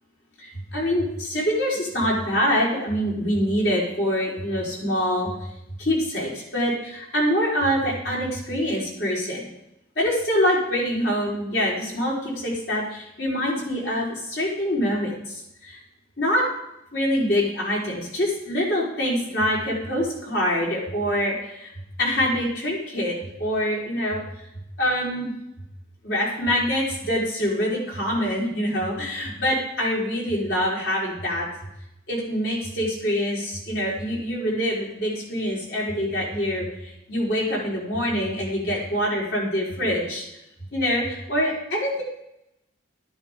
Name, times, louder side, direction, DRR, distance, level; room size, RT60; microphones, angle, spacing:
voice 1, 0.4-5.5 5.8-9.5 10.0-15.8 16.2-16.5 16.9-21.7 22.0-24.2 24.8-25.3 26.0-31.5 32.1-40.2 40.7-42.0, equal, 55° left, -5 dB, 4.6 m, -25 dB
12.5 x 12.0 x 3.8 m, 0.83 s
head